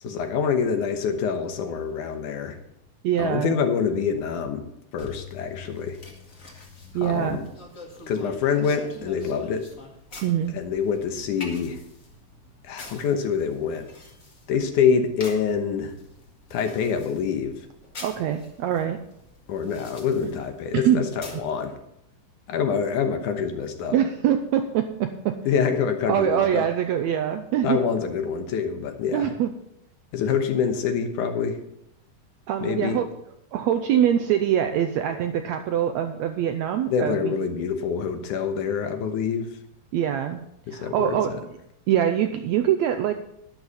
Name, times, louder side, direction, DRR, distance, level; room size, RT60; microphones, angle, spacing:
voice 1, 0.0-2.6 3.2-4.6 4.9-6.0 7.0-7.4 8.1-9.7 10.5-11.8 12.6-13.9 14.5-15.9 16.5-17.7 19.5-21.7 22.5-24.0 25.5-26.7 27.6-29.3 30.1-31.6 32.6-33.0 36.9-39.5 40.7-41.2, left 6 dB, 75° left, 7 dB, 2.5 m, -26 dB
voice 2, 3.0-3.5 6.9-7.4 10.2-10.6 18.0-19.0 20.7-21.0 23.9-25.4 26.1-27.8 29.1-29.5 32.5-33.1 33.5-37.3 39.9-40.4 40.7-41.3 41.9-43.1, right 10 dB, 80° right, 7 dB, 1.6 m, -23 dB
sound 1, 5.0-21.5, left 3 dB, 30° left, 1.7 m, -45 dB
12.0 x 10.5 x 4.1 m, 0.78 s
omnidirectional pair, 3.8 m